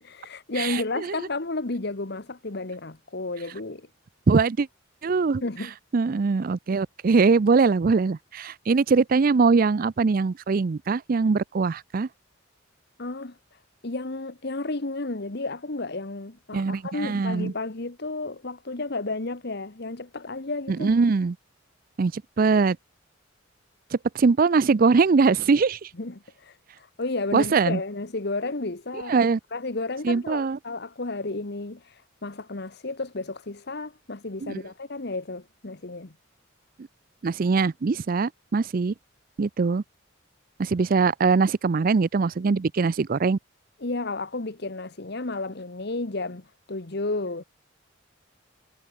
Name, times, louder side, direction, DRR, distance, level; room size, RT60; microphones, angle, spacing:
voice 1, 0.0-3.9 5.4-5.7 13.0-13.4 13.8-20.9 26.0-29.2 29.5-36.2 43.8-47.4, left 2 dB, 55° left, 1.3 m, -32 dB
voice 2, 0.6-1.1 4.3-4.7 5.0-5.4 5.9-12.1 16.5-17.5 20.7-21.4 22.0-22.8 23.9-25.9 27.3-27.8 29.1-29.4 30.0-30.6 34.4-34.6 37.2-38.9 39.4-39.8 40.6-43.4, right 4 dB, 45° right, 0.4 m, -22 dB
head